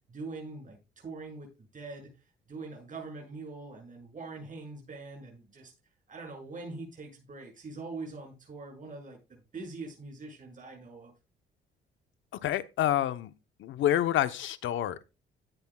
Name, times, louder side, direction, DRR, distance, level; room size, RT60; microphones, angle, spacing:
voice 1, 0.1-2.1 2.5-5.7 6.1-11.1, right 3 dB, 40° right, 7.1 m, -43 dB
voice 2, 12.4-13.3 13.6-15.0, left 12 dB, 75° left, 0.9 m, -28 dB
16.0 x 9.7 x 2.3 m
cardioid pair, 90°, 20 cm